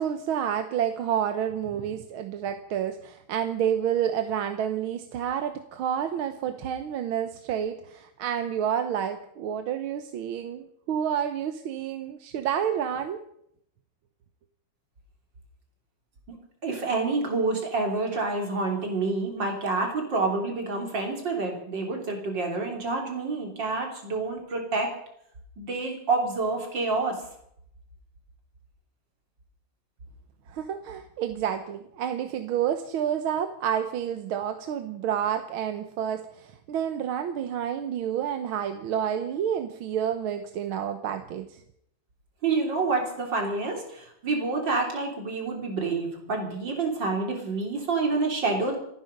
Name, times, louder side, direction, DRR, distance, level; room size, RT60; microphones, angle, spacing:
voice 1, 0.0-13.2 30.5-41.6, right 9 dB, 80° right, 8 dB, 1.7 m, -29 dB
voice 2, 16.6-24.9 25.6-27.2 42.4-48.8, right 3 dB, 60° right, 2 dB, 4.0 m, -28 dB
27.0 x 10.0 x 5.3 m, 0.72 s
omnidirectional pair, 2.3 m